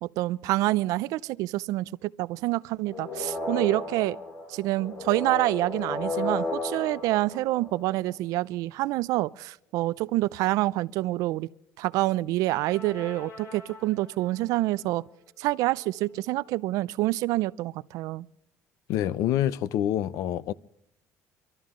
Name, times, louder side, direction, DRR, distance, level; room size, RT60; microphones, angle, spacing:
voice 1, 0.0-4.2 4.5-11.5 11.8-15.0 15.4-18.3, right 18 dB, 75° right, 0.5 m, -27 dB
sound 1, 2.9-8.2 12.5-14.2, left 2 dB, 50° left, 3.9 m, -35 dB
voice 2, 18.9-20.5, left 12 dB, 70° left, 0.6 m, -26 dB
25.5 x 13.0 x 3.7 m
cardioid pair, 135°, 6 cm